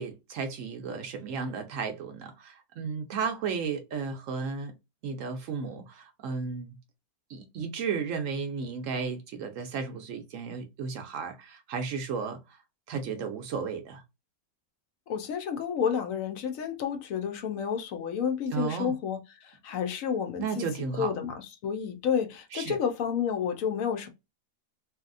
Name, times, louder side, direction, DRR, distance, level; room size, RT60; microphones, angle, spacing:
voice 1, 0.0-4.7 5.0-6.8 7.3-12.6 12.9-14.0 18.5-18.9 20.4-21.1 22.5-22.8, right 5 dB, 70° right, 0.9 m, -34 dB
voice 2, 15.1-20.7 21.0-24.1, left 7 dB, 70° left, 0.9 m, -30 dB
2.8 x 2.7 x 2.4 m
omnidirectional pair, 1.5 m